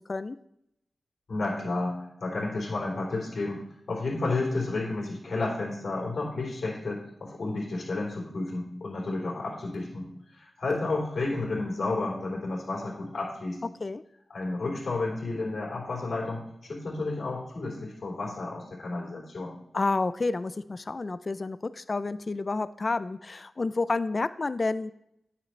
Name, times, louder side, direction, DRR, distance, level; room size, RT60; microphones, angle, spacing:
voice 1, 1.3-3.6 3.9-13.6 14.3-19.6, left 2 dB, 70° left, -3 dB, 3.6 m, -31 dB
voice 2, 19.7-24.9, left 3 dB, 45° left, 14 dB, 0.4 m, -30 dB
9.3 x 7.4 x 3.2 m, 0.76 s
cardioid pair, 55°, 0 cm